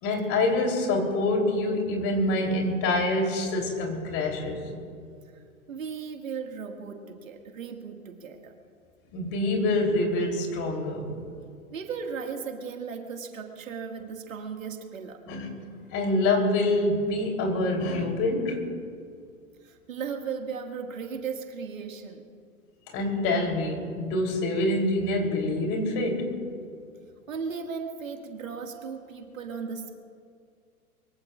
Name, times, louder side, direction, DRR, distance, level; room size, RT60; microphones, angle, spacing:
voice 1, 0.0-4.6 9.1-11.2 15.3-15.5 15.9-18.6 22.9-26.3, left 2 dB, 30° left, 2 dB, 3.4 m, -26 dB
voice 2, 5.7-8.5 11.7-15.2 19.6-22.2 27.3-29.9, right 6 dB, 65° right, 3 dB, 2.1 m, -36 dB
23.5 x 23.5 x 2.5 m, 2.2 s
figure-of-eight pair, 110°, 42 cm